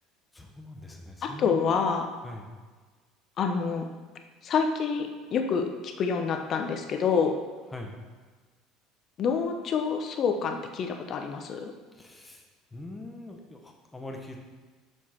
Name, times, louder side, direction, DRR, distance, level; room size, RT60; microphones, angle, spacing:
voice 1, 0.3-1.7 2.2-2.5 7.7-7.9 11.9-12.4 12.7-14.4, left 2 dB, 15° left, 2 dB, 1.4 m, -42 dB
voice 2, 1.2-2.0 3.4-3.9 4.4-7.4 9.2-11.7, left 6 dB, 50° left, 5 dB, 1.0 m, -27 dB
6.5 x 6.1 x 4.7 m, 1.4 s
hypercardioid pair, 80°, 0 cm